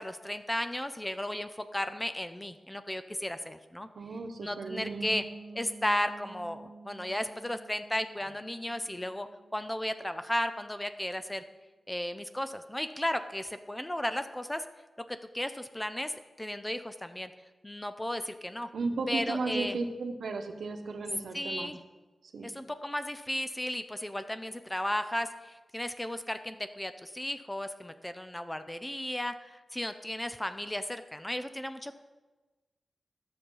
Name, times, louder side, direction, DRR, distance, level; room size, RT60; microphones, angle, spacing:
voice 1, 0.0-3.9 4.4-5.2 5.5-9.3 9.5-11.4 11.9-14.6 15.1-17.3 17.6-18.7 19.1-19.8 21.3-21.8 22.4-32.0, left 1 dB, 10° left, 10 dB, 0.5 m, -34 dB
voice 2, 3.9-5.2 18.7-21.7 22.3-22.5, right 3 dB, 75° right, 6 dB, 1.0 m, -35 dB
Piano, 4.6-10.3, right 3 dB, 50° right, 0.6 m, -49 dB
13.0 x 6.8 x 5.5 m, 1.2 s
wide cardioid pair, 175°, 0 cm